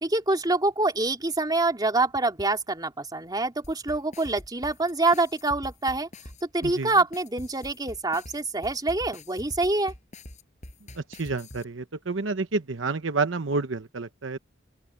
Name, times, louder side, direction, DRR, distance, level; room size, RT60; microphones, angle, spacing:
voice 1, 0.0-6.1 6.5-9.9, right 2 dB, 20° right, 3.3 m, -26 dB
sound 1, 3.6-11.6, left 1 dB, 40° left, 6.2 m, -44 dB
voice 2, 11.0-14.4, right 3 dB, 80° right, 0.9 m, -29 dB
open air
head